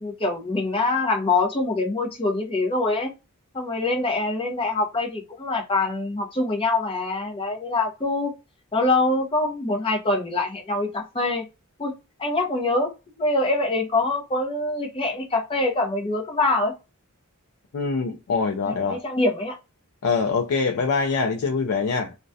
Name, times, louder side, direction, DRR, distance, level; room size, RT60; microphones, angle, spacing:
voice 1, 0.0-3.1 3.5-8.3 8.7-11.4 11.8-11.9 12.2-12.9 13.2-16.7 18.6-19.6, left 2 dB, 25° left, 0.6 m, -24 dB
voice 2, 17.7-19.0 20.0-22.2, left 4 dB, 70° left, 0.4 m, -24 dB
2.3 x 2.1 x 2.5 m
head